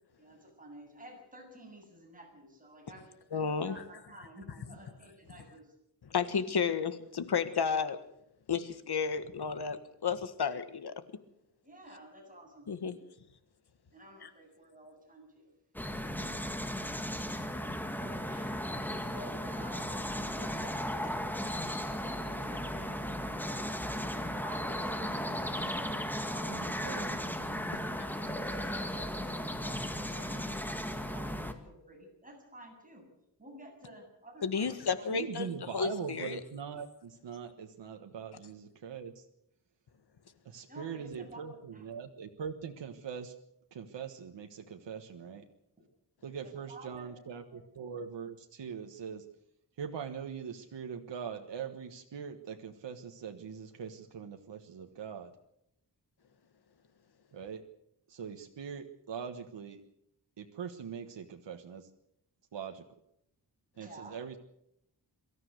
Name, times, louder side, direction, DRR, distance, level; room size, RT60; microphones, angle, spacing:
voice 1, 0.2-3.1 3.5-5.7 11.6-12.7 13.9-15.5 17.6-21.2 22.0-23.8 24.2-27.4 27.6-28.3 28.9-33.1 33.4-35.1 40.6-41.9 46.4-47.6 63.7-64.2, right 1 dB, 20° right, 0 dB, 8.0 m, -52 dB
voice 2, 3.3-3.8 6.1-8.0 8.5-11.0 12.7-13.0 14.2-14.3 28.0-28.1 34.4-36.4, left 6 dB, 65° left, 11 dB, 1.7 m, -32 dB
sound 1, 15.7-31.5, equal, 5° left, 1.9 m, -36 dB
voice 3, 26.5-27.2 27.6-27.8 35.1-39.2 40.4-43.3 43.7-45.4 46.2-49.2 49.8-55.3 57.3-57.6 58.1-59.8 60.4-61.9 62.5-62.8 63.8-64.4, right 7 dB, 85° right, 5 dB, 1.5 m, -42 dB
23.5 x 14.0 x 8.1 m, 0.78 s
wide cardioid pair, 135°, 42 cm